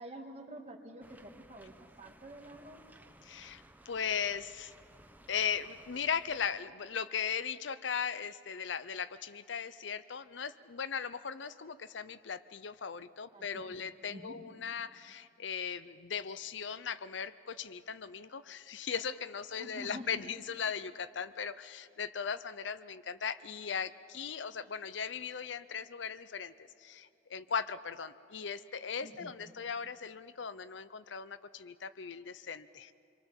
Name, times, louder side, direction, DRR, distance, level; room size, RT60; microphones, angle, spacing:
voice 1, 0.0-2.8 13.3-14.4 19.6-20.1 29.0-29.3, right 1 dB, 35° right, 3 dB, 2.2 m, -49 dB
sound 1, 1.0-6.6, right 1 dB, 10° right, 0.9 m, -59 dB
voice 2, 3.2-4.7 5.3-26.5 26.8-32.9, left 7 dB, 70° left, 14 dB, 0.7 m, -38 dB
27.0 x 23.0 x 7.3 m, 2.5 s
head